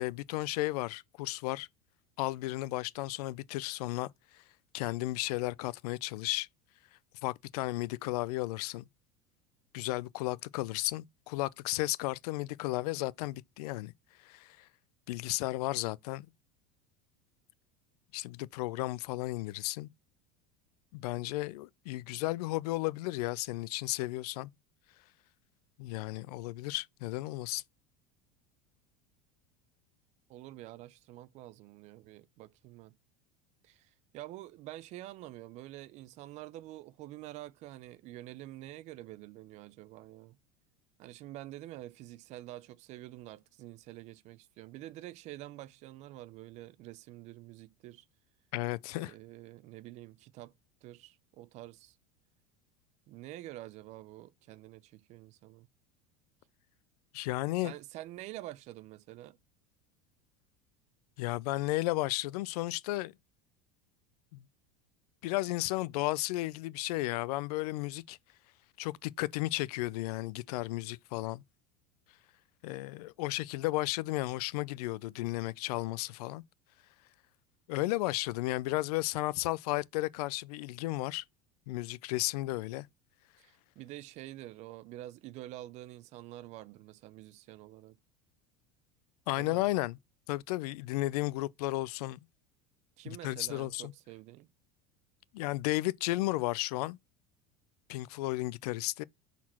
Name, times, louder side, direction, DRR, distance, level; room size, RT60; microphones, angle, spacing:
voice 1, 0.0-1.7 2.2-4.1 4.7-6.5 7.2-8.9 9.7-13.9 14.2-14.7 15.1-16.3 18.1-19.9 20.9-24.5 25.8-27.6 48.5-49.1 57.1-57.7 61.2-63.1 64.3-64.4 65.2-68.2 68.8-71.4 72.6-76.4 77.7-81.2 81.7-82.9 89.3-90.0 90.3-92.2 93.1-93.9 95.3-97.0 97.9-99.0, left 19 dB, 90° left, 0.4 m, -34 dB
voice 2, 30.3-33.0 33.6-40.4 41.0-48.1 49.0-50.5 50.8-52.0 53.1-55.7 57.6-59.4 83.4-88.0 89.4-89.7 93.0-94.5, right 15 dB, 35° right, 0.4 m, -47 dB
6.1 x 4.1 x 4.2 m
supercardioid pair, 160°, 19 cm